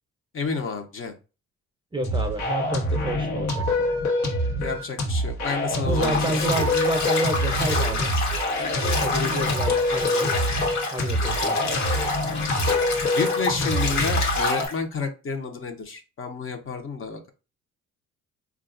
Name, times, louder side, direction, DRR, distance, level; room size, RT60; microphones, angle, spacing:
voice 1, 0.3-1.1 4.6-6.7 13.1-17.3, left 4 dB, 45° left, 5 dB, 0.7 m, -30 dB
voice 2, 1.9-3.9 5.9-8.1 9.0-10.3 10.9-11.8, right 2 dB, 15° right, 4 dB, 0.6 m, -30 dB
sound 1, 2.0-14.7, left 1 dB, 90° left, 1.1 m, -25 dB
Bathtub (filling or washing), 5.9-14.7, left 3 dB, 65° left, 1.1 m, -28 dB
3.8 x 2.4 x 2.5 m, 0.31 s
cardioid pair, 90°, 30 cm